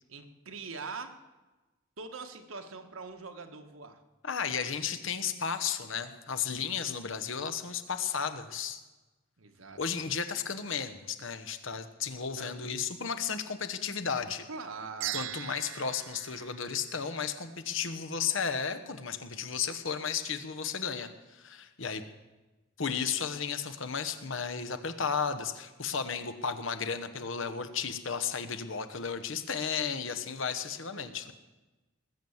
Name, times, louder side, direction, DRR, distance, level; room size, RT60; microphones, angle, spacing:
voice 1, 0.1-1.1 2.0-4.0 6.8-7.2 9.4-10.0 12.4-12.7 14.5-15.3 30.9-31.3, right 4 dB, 80° right, 6 dB, 1.4 m, -43 dB
voice 2, 4.2-8.8 9.8-14.5 15.1-22.0 22.8-31.3, left 6 dB, 70° left, 8 dB, 1.1 m, -34 dB
sound 1, 15.0-17.5, right 14 dB, 65° right, 0.4 m, -40 dB
19.5 x 7.9 x 7.2 m, 1.2 s
head